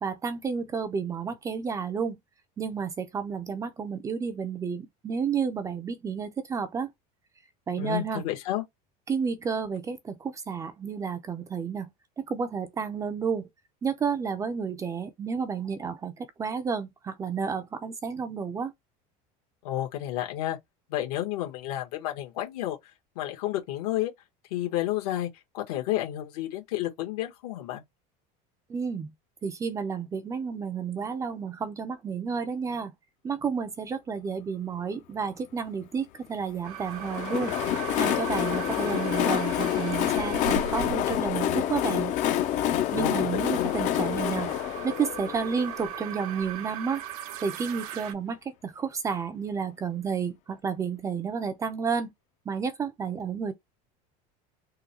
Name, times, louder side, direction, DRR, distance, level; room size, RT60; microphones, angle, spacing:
voice 1, 0.0-2.2 2.6-6.9 7.7-8.2 9.1-11.9 12.3-13.5 13.8-18.7 28.7-29.1 29.4-32.9 33.2-37.5 38.0-42.2 42.9-44.5 44.8-47.0 47.4-52.1 52.5-53.5, right 6 dB, 15° right, 0.4 m, -31 dB
voice 2, 7.8-8.6 19.6-20.6 20.9-22.8 23.1-24.1 24.5-25.3 25.5-27.8 42.9-43.7, left 13 dB, 80° left, 1.5 m, -31 dB
sound 1, 36.6-48.1, right 10 dB, 75° right, 0.8 m, -40 dB
Train, 36.9-46.5, left 11 dB, 40° left, 0.5 m, -28 dB
3.6 x 2.3 x 2.9 m
cardioid pair, 155°, 19 cm